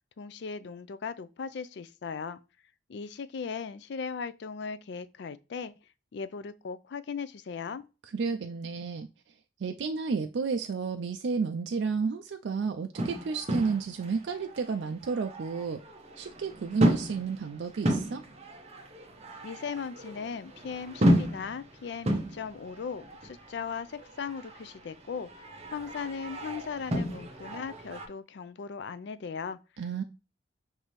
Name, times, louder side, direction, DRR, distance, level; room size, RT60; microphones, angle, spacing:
voice 1, 0.2-2.4 2.9-5.8 6.1-7.8 19.4-25.3 25.7-29.6, left 5 dB, 65° left, 0.4 m, -38 dB
voice 2, 8.1-9.1 9.6-15.8 16.2-18.2 29.8-30.0, right 5 dB, 65° right, 0.4 m, -31 dB
sound 1, 12.9-28.1, equal, 35° right, 0.8 m, -33 dB
5.9 x 2.7 x 3.1 m
head